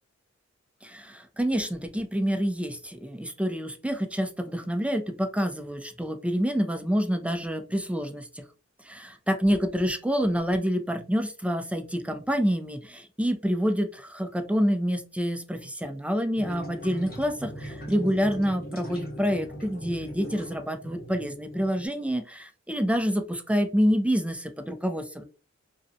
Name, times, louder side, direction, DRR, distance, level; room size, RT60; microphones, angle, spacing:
voice 1, 0.8-8.4 8.8-25.2, equal, 5° right, 6 dB, 0.4 m, -27 dB
sound 1, 16.3-21.9, equal, 30° left, 1.0 m, -40 dB
2.5 x 2.1 x 2.5 m, 0.35 s
wide cardioid pair, 65°, 29 cm